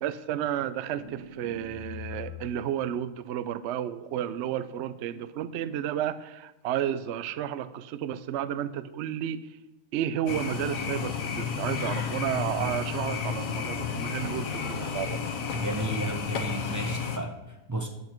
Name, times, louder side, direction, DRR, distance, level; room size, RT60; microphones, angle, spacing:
voice 1, 0.0-9.5 9.9-15.2, right 10 dB, 80° right, 14 dB, 0.6 m, -32 dB
sound 1, 0.8-2.6, left 5 dB, 25° left, 1.1 m, -42 dB
sound 2, 10.3-17.2, left 6 dB, 60° left, 1.3 m, -32 dB
voice 2, 15.5-17.3 17.7-17.9, right 2 dB, 15° right, 3 dB, 0.6 m, -33 dB
10.5 x 8.0 x 4.4 m, 1.0 s
omnidirectional pair, 1.7 m